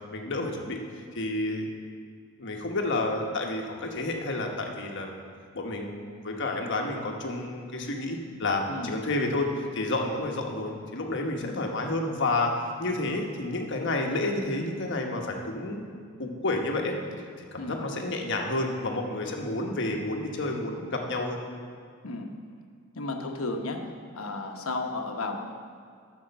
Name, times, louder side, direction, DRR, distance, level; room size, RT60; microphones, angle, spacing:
voice 1, 0.1-0.8 1.1-1.7 2.4-5.2 5.5-15.9 16.2-16.9 17.5-21.4, left 2 dB, 60° left, 2 dB, 1.2 m, -30 dB
voice 2, 22.9-23.8 24.1-25.4, left 2 dB, 85° left, 3 dB, 1.0 m, -33 dB
8.6 x 6.4 x 6.7 m, 2.2 s
head